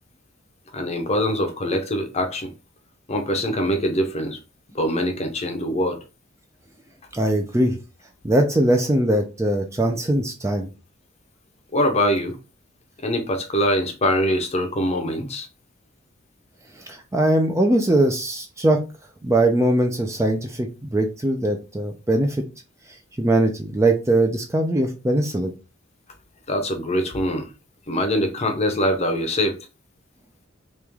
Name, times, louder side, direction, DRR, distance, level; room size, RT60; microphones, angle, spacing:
voice 1, 0.7-2.5 3.1-4.4 4.7-6.0 11.7-12.4 13.0-15.5 26.5-27.5 27.9-29.6, equal, 30° left, 0.7 m, -23 dB
voice 2, 7.1-7.8 8.2-10.7 16.9-18.8 19.2-22.4 23.2-25.5, right 1 dB, 15° right, 0.4 m, -21 dB
3.2 x 3.0 x 3.5 m
head